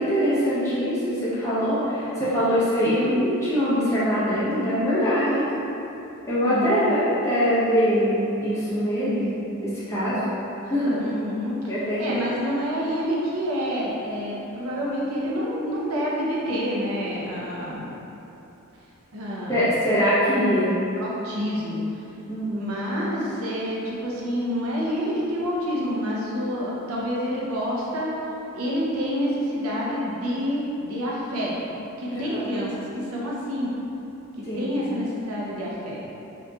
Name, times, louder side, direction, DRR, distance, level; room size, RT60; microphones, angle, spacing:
voice 1, 0.0-5.5 6.3-9.3 9.6-10.2 10.6-11.0 11.7-12.2 19.5-20.7 22.3-22.8 32.1-32.5 34.4-34.7, equal, 15° left, -11 dB, 0.8 m, -23 dB
voice 2, 6.4-6.9 11.0-11.6 12.0-17.9 19.1-19.7 21.0-21.8 22.5-28.1 28.5-31.5 32.0-33.7 34.6-36.0, equal, 80° right, -5 dB, 0.7 m, -28 dB
3.8 x 2.8 x 2.3 m, 3.0 s
head